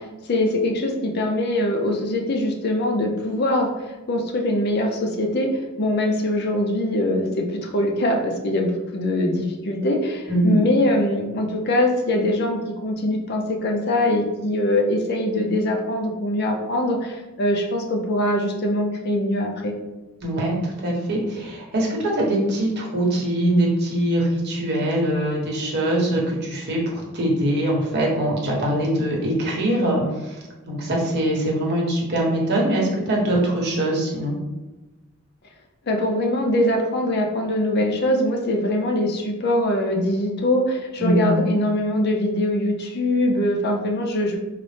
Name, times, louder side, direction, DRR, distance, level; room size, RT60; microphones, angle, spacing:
voice 1, 0.0-3.7 4.1-5.5 5.8-19.7 35.9-44.4, left 1 dB, 50° left, 2 dB, 0.5 m, -22 dB
voice 2, 20.2-30.4 30.7-34.4 41.0-41.5, right 1 dB, 50° right, -2 dB, 0.9 m, -22 dB
4.0 x 2.0 x 3.2 m, 1.1 s
head